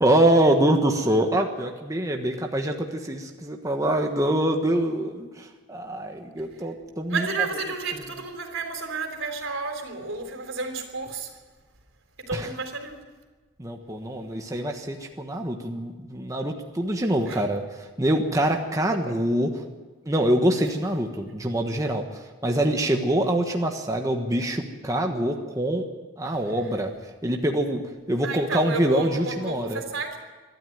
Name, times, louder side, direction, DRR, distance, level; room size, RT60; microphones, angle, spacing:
voice 1, 0.0-7.3 12.3-12.5 13.6-19.6 20.0-25.9 26.2-26.9 27.2-27.8 28.1-29.8, right 1 dB, 15° right, 3 dB, 1.3 m, -25 dB
voice 2, 7.1-11.3 12.2-13.0 17.3-17.4 28.2-30.2, right 3 dB, 80° right, 5 dB, 3.6 m, -31 dB
23.5 x 13.0 x 9.3 m, 1.3 s
head